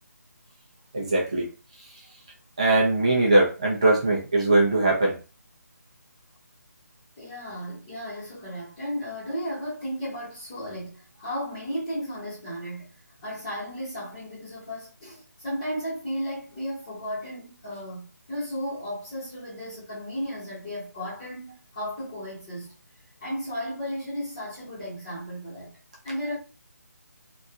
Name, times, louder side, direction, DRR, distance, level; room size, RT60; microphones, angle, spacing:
voice 1, 0.9-1.5 2.6-5.2, right 2 dB, 20° right, 0.5 m, -21 dB
voice 2, 7.2-12.9 13.2-22.7 23.2-25.8 26.0-26.4, equal, 15° left, 1.2 m, -34 dB
2.8 x 2.5 x 2.4 m
hypercardioid pair, 175°, 10 cm